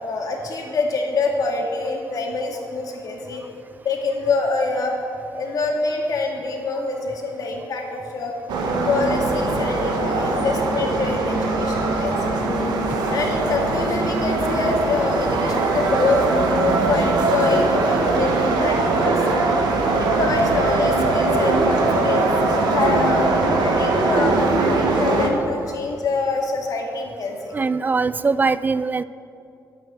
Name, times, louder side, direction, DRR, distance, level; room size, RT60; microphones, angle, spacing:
voice 1, 0.0-3.4 3.8-5.0 5.3-8.3 8.9-12.4 13.1-19.4 20.0-27.5, left 3 dB, 60° left, 1 dB, 2.1 m, -25 dB
sound 1, 8.5-25.3, right 3 dB, 90° right, 1.6 m, -21 dB
voice 2, 27.5-29.0, right 4 dB, 25° right, 16 dB, 0.4 m, -21 dB
11.0 x 8.4 x 8.0 m, 2.6 s
cardioid pair, 105°, 7 cm